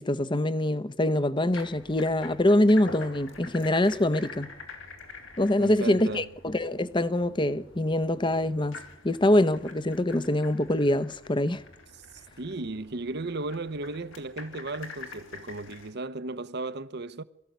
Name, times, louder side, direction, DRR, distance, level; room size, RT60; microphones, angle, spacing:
voice 1, 0.0-4.5 5.4-11.6, left 1 dB, 25° left, 0.8 m, -24 dB
sound 1, 1.5-15.9, left 3 dB, 85° left, 3.9 m, -46 dB
voice 2, 5.6-6.3 12.4-17.2, right 2 dB, 55° right, 1.0 m, -35 dB
23.0 x 14.5 x 9.4 m
head